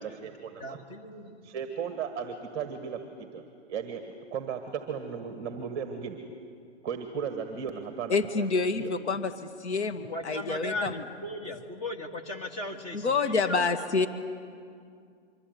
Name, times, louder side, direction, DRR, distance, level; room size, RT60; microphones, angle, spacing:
voice 1, 0.0-0.8 1.4-3.4 3.7-4.0 4.3-6.2 6.8-8.4 8.8-8.9, right 7 dB, 20° right, 6 dB, 1.6 m, -35 dB
voice 2, 0.6-1.4 10.1-14.1, left 1 dB, 20° left, 3 dB, 1.8 m, -37 dB
voice 3, 8.1-9.3 9.6-11.0 12.9-14.1, left 4 dB, 70° left, 7 dB, 2.1 m, -27 dB
25.5 x 24.5 x 9.5 m, 2.3 s
hypercardioid pair, 165°, 36 cm